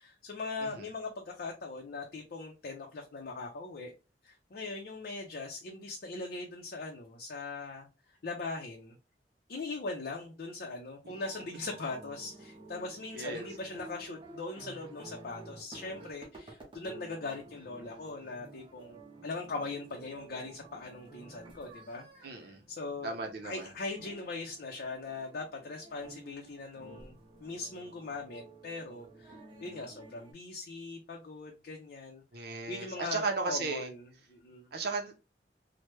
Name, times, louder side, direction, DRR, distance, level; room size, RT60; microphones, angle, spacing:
voice 1, 0.0-3.9 4.2-7.9 8.2-9.0 9.5-19.0 19.2-32.2 32.7-34.7, left 3 dB, 55° left, 0.5 m, -40 dB
sound 1, 11.1-30.3, right 3 dB, 30° right, 0.8 m, -52 dB
voice 2, 13.1-13.5 22.2-22.6 23.0-23.7 32.3-33.9 34.7-35.2, right 4 dB, 60° right, 0.6 m, -35 dB
3.1 x 2.1 x 3.1 m
head